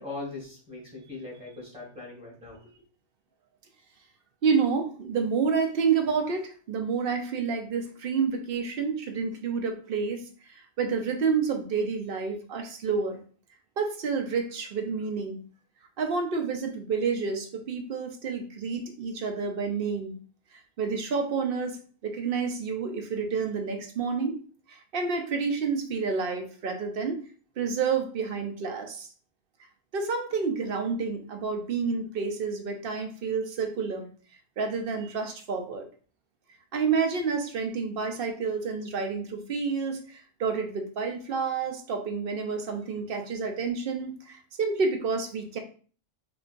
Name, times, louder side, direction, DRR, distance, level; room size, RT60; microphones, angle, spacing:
voice 1, 0.0-2.6, left 3 dB, 5° right, -5 dB, 1.6 m, -40 dB
voice 2, 4.4-13.2 13.8-15.4 16.0-20.1 20.5-21.8 22.0-24.4 24.7-27.2 27.6-29.1 29.9-34.1 34.6-35.9 36.7-45.6, right 5 dB, 55° right, 5 dB, 0.7 m, -29 dB
4.7 x 2.5 x 2.5 m, 0.41 s
omnidirectional pair, 1.3 m